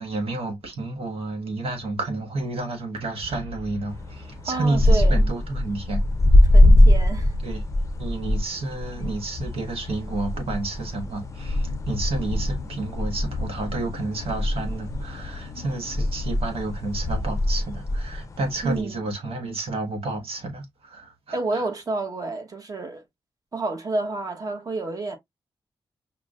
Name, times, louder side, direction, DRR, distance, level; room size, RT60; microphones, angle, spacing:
voice 1, 0.0-6.0 7.4-7.6 8.0-21.6, right 2 dB, 75° right, 1.3 m, -30 dB
Boom, 3.2-7.6, equal, 55° right, 2.3 m, -46 dB
sound 1, 3.9-18.8, left 1 dB, 30° left, 0.5 m, -22 dB
voice 2, 4.5-5.2 6.5-7.3 18.6-19.0 21.3-23.0 23.5-25.2, right 3 dB, 40° right, 1.1 m, -29 dB
sound 2, 11.1-17.7, left 9 dB, 80° left, 0.4 m, -40 dB
5.9 x 2.2 x 2.4 m
wide cardioid pair, 120°, 10 cm